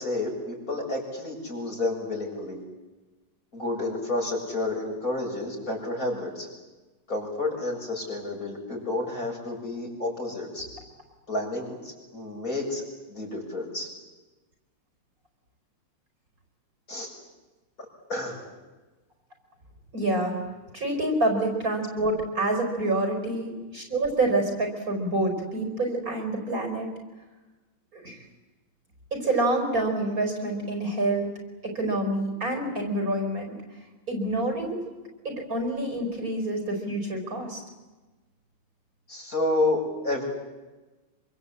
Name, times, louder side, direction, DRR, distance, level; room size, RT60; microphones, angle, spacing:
voice 1, 0.0-2.6 3.5-6.5 7.1-10.6 11.3-12.8 13.1-13.9 16.9-17.1 18.1-18.4 39.1-40.2, left 2 dB, 40° left, -1 dB, 7.8 m, -30 dB
voice 2, 19.9-20.3 20.7-26.9 27.9-28.2 29.1-31.3 31.7-33.5 34.1-34.8 35.2-37.6, right 2 dB, 40° right, 3 dB, 4.9 m, -27 dB
26.5 x 24.5 x 8.6 m, 1.2 s
omnidirectional pair, 2.4 m